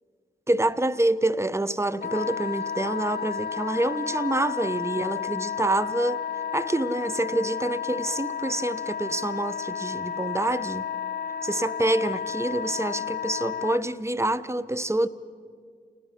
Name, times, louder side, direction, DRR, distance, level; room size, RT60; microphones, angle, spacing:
voice 1, 0.5-6.3 6.5-10.9 11.4-15.1, right 1 dB, 15° right, 0.9 m, -27 dB
Wind instrument woodwind instrument, 2.0-13.8, left 7 dB, 65° left, 0.9 m, -32 dB
29.0 x 19.5 x 5.8 m
cardioid pair, 40°, 18 cm